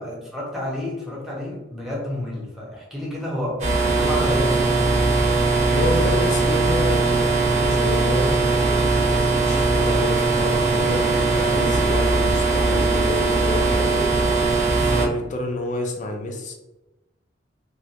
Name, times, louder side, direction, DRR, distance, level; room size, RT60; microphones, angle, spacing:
voice 1, 0.0-3.6 3.8-5.3 5.9-6.1, left 1 dB, ahead, -4 dB, 0.6 m, -31 dB
sound 1, 3.6-15.1, right 3 dB, 40° right, 0.6 m, -20 dB
voice 2, 5.7-14.1 14.8-16.5, left 1 dB, 40° left, 2 dB, 0.4 m, -29 dB
2.3 x 2.1 x 2.8 m, 0.99 s
head